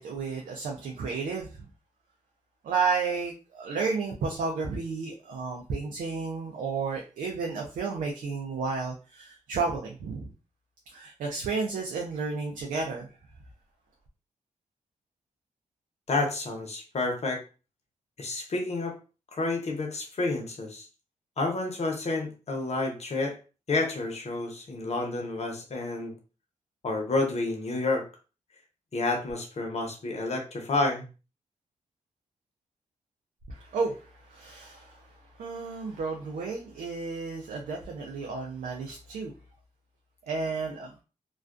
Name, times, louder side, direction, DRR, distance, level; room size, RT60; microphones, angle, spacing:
voice 1, 0.0-1.5 2.6-10.3 10.9-13.1 33.5-34.0 34.3-35.0 35.4-39.3 40.3-40.9, right 4 dB, 90° right, 1 dB, 0.4 m, -32 dB
voice 2, 16.1-17.4 18.2-18.9 19.3-20.9 21.4-23.4 23.7-26.1 26.8-28.1 28.9-31.1, left 3 dB, 55° left, 2 dB, 0.8 m, -29 dB
2.3 x 2.2 x 2.4 m, 0.33 s
cardioid pair, 55°, 13 cm